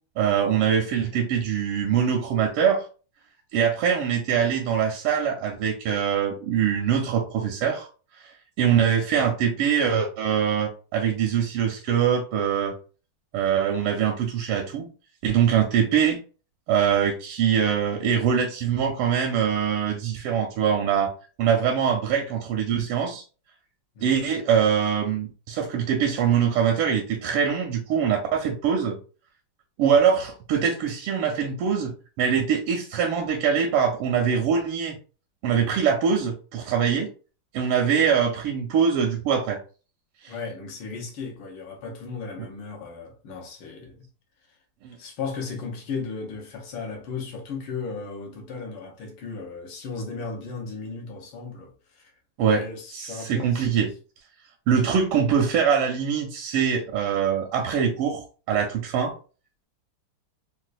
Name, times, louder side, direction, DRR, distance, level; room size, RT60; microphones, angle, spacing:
voice 1, 0.2-2.9 3.5-7.9 8.2-8.3 8.6-12.7 13.3-14.9 15.2-16.2 16.7-21.1 21.4-23.2 24.0-29.0 29.8-35.0 35.4-37.1 37.5-39.6 40.2-40.3 42.4-42.5 44.8-45.0 52.4-52.6 52.9-53.9 54.7-59.1, right 7 dB, 85° right, 1.5 m, -23 dB
voice 2, 23.9-24.2 40.3-44.1 45.0-52.1 52.5-53.9, left 4 dB, 75° left, 1.6 m, -35 dB
4.2 x 2.2 x 2.4 m
omnidirectional pair, 2.4 m